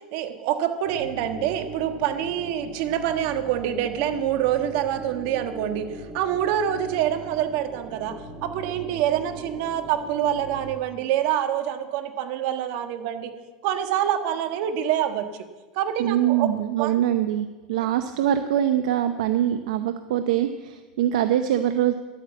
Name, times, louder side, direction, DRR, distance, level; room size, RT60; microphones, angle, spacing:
voice 1, 0.1-5.9 6.1-8.1 8.4-13.3 13.6-15.3 15.7-16.5 16.8-17.0 17.8-17.9, right 10 dB, 65° right, 7 dB, 1.5 m, -26 dB
sound 1, 0.9-10.7, right 2 dB, 40° right, 5.0 m, -40 dB
voice 2, 16.0-21.9, right 11 dB, 80° right, 9 dB, 0.7 m, -23 dB
11.5 x 8.7 x 7.9 m, 1.2 s
supercardioid pair, 115°, 4 cm